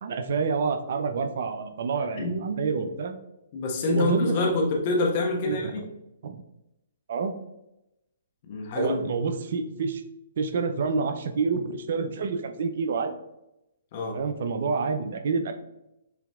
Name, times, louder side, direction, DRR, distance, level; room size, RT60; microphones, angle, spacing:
voice 1, 0.0-3.2 3.9-4.4 5.4-5.9 6.2-6.4 7.1-7.3 8.7-10.0 10.4-13.1 14.1-15.5, right 5 dB, 60° right, 8 dB, 0.5 m, -28 dB
voice 2, 3.5-5.8 8.5-9.1 13.9-14.2, left 2 dB, 45° left, 0 dB, 1.2 m, -26 dB
6.8 x 2.9 x 2.3 m, 0.89 s
hypercardioid pair, 135°, 0 cm